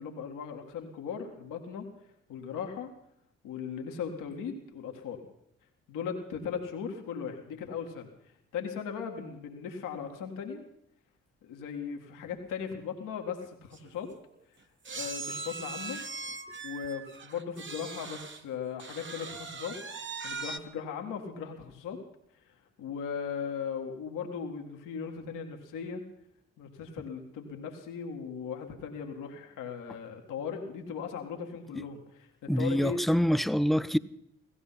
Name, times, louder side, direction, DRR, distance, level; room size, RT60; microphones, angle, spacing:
voice 1, 0.0-1.9 2.3-2.9 3.4-5.2 5.9-8.1 8.5-10.6 11.4-14.1 14.9-16.0 16.6-19.8 20.2-22.0 22.8-26.0 26.6-33.1, left 6 dB, 80° left, 1.9 m, -38 dB
sound 1, 13.4-13.5 13.7-13.9 14.9-18.4 18.8-20.6, right 4 dB, 40° right, 1.2 m, -40 dB
voice 2, 32.5-34.0, equal, ahead, 0.6 m, -25 dB
16.5 x 15.0 x 5.8 m
hypercardioid pair, 40°, 31 cm